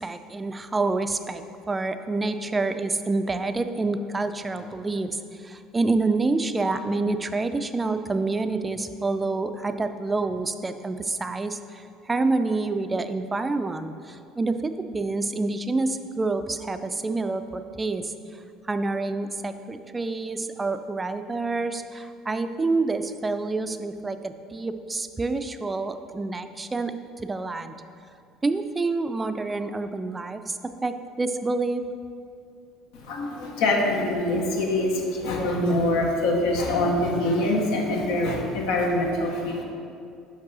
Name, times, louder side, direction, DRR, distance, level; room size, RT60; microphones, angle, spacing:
voice 1, 0.0-18.1 18.6-27.0 27.2-27.8 28.4-31.9, right 3 dB, 20° right, 9 dB, 0.4 m, -27 dB
voice 2, 32.9-39.6, left 1 dB, 80° left, 0 dB, 1.0 m, -24 dB
5.4 x 5.3 x 4.1 m, 2.4 s
hypercardioid pair, 75°, 0 cm